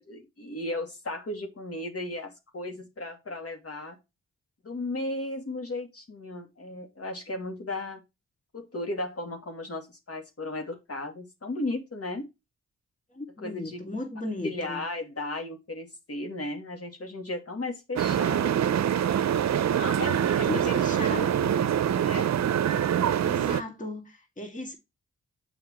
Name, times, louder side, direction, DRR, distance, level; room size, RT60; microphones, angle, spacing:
voice 1, 0.1-4.0 4.6-8.0 8.5-12.3 13.4-13.8 14.4-18.6 19.7-21.3 22.0-22.3, left 2 dB, 50° left, 2.5 m, -35 dB
voice 2, 13.1-14.8 20.2-21.5 23.2-24.7, left 2 dB, 25° left, 2.2 m, -36 dB
sound 1, 18.0-23.6, right 9 dB, 60° right, 0.7 m, -25 dB
7.3 x 5.5 x 3.0 m
cardioid pair, 55°, 30 cm